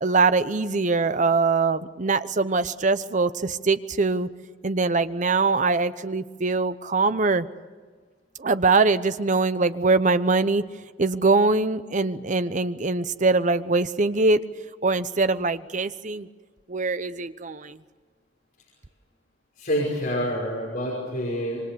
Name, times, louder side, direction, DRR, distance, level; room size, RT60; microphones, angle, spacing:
voice 1, 0.0-4.3 4.6-7.5 8.4-10.6 11.0-14.4 14.8-16.3 16.7-17.8, right 3 dB, 40° right, 12 dB, 0.9 m, -22 dB
voice 2, 19.6-21.6, equal, 50° left, -3 dB, 5.8 m, -27 dB
27.5 x 23.5 x 6.9 m, 1.5 s
head